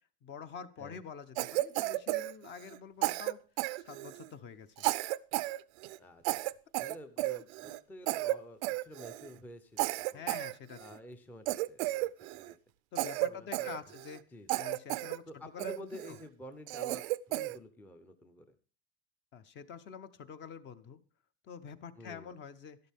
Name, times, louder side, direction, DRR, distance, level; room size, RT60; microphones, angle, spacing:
voice 1, 0.2-3.4 3.8-4.9 10.1-10.8 12.9-14.2 14.6-15.2 15.5-16.2 19.3-21.0 21.4-22.8, left 7 dB, 35° left, 12 dB, 0.8 m, -47 dB
Cough, 1.4-2.8 3.0-4.3 4.8-5.6 5.8-6.0 6.2-7.8 8.1-8.4 8.6-9.3 9.8-11.0 11.5-12.5 13.0-14.2 14.5-15.2 15.6-16.1 16.7-17.6, right 19 dB, 80° right, 0.6 m, -33 dB
voice 2, 6.8-10.3 10.8-12.6 13.2-13.9 14.3-14.5 15.3-18.6 22.0-22.3, left 1 dB, 5° left, 8 dB, 0.6 m, -50 dB
12.0 x 12.0 x 3.5 m, 0.38 s
cardioid pair, 155°, 33 cm